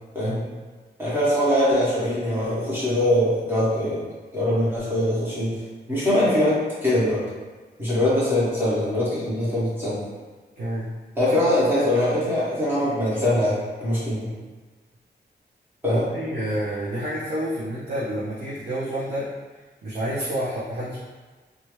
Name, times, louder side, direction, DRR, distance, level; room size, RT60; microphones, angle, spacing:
voice 1, 1.0-4.0 4.3-5.5 5.9-7.2 7.8-10.0 11.2-14.3 15.8-16.1, left 1 dB, 10° right, -10 dB, 1.0 m, -22 dB
voice 2, 10.6-10.9 15.9-19.3 19.8-21.0, right 1 dB, 60° right, -9 dB, 0.7 m, -29 dB
2.8 x 2.4 x 3.1 m, 1.3 s
wide cardioid pair, 165°, 18 cm